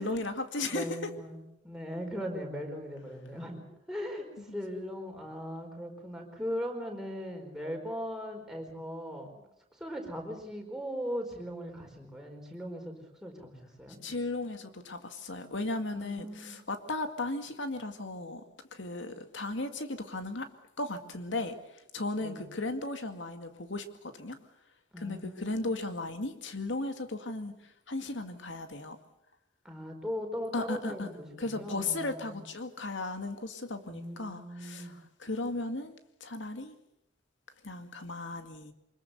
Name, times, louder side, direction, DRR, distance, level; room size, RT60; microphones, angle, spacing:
voice 1, 0.0-1.1 4.5-4.6 14.0-18.4 18.7-20.5 20.8-24.4 25.0-29.0 30.5-31.1 31.4-35.9 36.2-36.7 37.6-38.7, left 2 dB, 75° left, 7 dB, 2.2 m, -36 dB
voice 2, 0.7-9.3 9.7-12.9 13.2-14.0 15.9-16.6 22.2-22.5 24.9-25.8 29.6-32.4 33.9-34.9, equal, 5° right, 1 dB, 4.5 m, -39 dB
24.5 x 21.5 x 6.9 m, 0.82 s
head